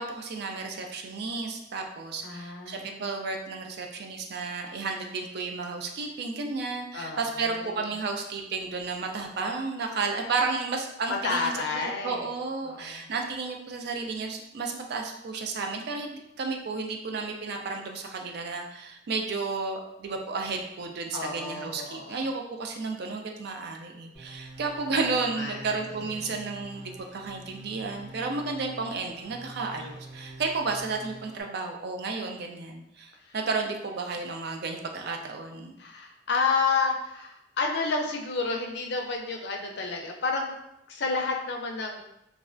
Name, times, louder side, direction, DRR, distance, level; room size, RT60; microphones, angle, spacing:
voice 1, 0.0-16.1 16.4-35.7, right 4 dB, 55° right, 3 dB, 0.4 m, -32 dB
voice 2, 2.2-3.0 6.9-7.9 11.1-12.3 12.6-13.0 21.1-22.3 24.9-25.6 33.3-33.4 35.8-40.5 40.9-42.0, left 4 dB, 60° left, 2 dB, 0.4 m, -30 dB
sound 1, 24.1-31.4, right 2 dB, 10° right, 1.4 m, -46 dB
3.2 x 2.3 x 2.4 m, 0.83 s
head